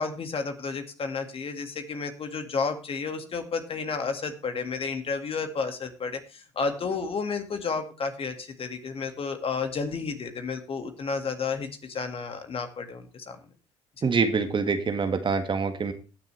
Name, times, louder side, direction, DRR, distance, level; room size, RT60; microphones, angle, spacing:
voice 1, 0.0-13.4 14.0-14.1, left 5 dB, 45° left, 7 dB, 2.1 m, -31 dB
voice 2, 14.0-15.9, right 5 dB, 35° right, 7 dB, 1.8 m, -25 dB
20.0 x 7.0 x 3.4 m, 0.33 s
hypercardioid pair, 65°, 14 cm